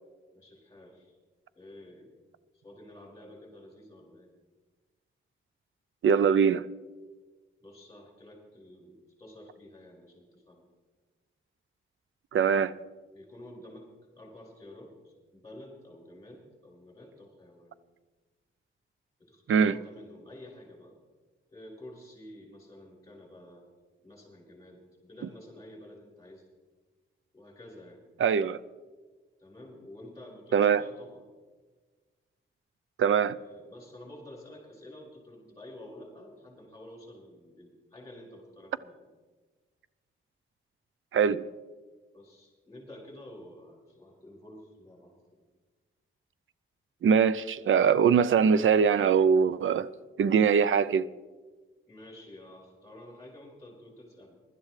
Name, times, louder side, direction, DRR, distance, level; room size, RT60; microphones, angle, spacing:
voice 1, 0.3-1.2 1.6-2.1 2.5-4.3 7.6-10.6 12.3-12.7 13.1-13.9 14.1-17.8 19.2-20.9 21.5-23.6 24.0-26.5 27.3-28.0 29.4-31.2 33.3-39.1 42.1-45.4 51.9-54.4, left 1 dB, 15° left, 5.2 m, -50 dB
voice 2, 6.0-6.7 12.3-12.7 19.5-19.7 28.2-28.6 30.5-30.8 33.0-33.4 41.1-41.4 47.0-49.9 50.2-51.1, right 7 dB, 70° right, 0.5 m, -22 dB
23.0 x 12.5 x 3.3 m
wide cardioid pair, 150°, 21 cm